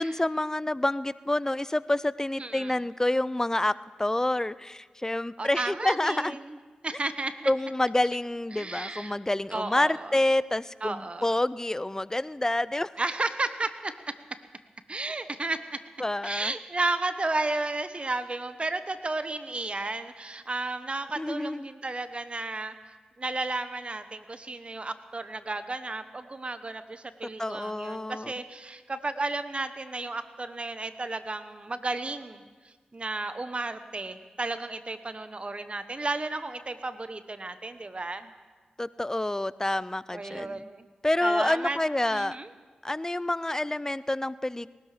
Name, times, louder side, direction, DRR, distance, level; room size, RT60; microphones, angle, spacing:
voice 1, 0.0-6.4 7.5-12.9 16.0-16.5 21.2-21.7 27.4-28.3 38.8-40.7 41.0-42.4 42.8-44.7, left 1 dB, 20° left, 18 dB, 0.5 m, -28 dB
voice 2, 2.4-2.8 5.4-6.6 6.8-7.5 8.5-9.2 9.5-10.1 10.8-11.4 13.0-13.9 14.9-15.8 16.2-38.3 40.1-40.9 41.2-41.8 42.1-42.5, right 2 dB, 40° right, 11 dB, 1.1 m, -33 dB
19.0 x 12.5 x 5.0 m, 1.4 s
cardioid pair, 40°, 3 cm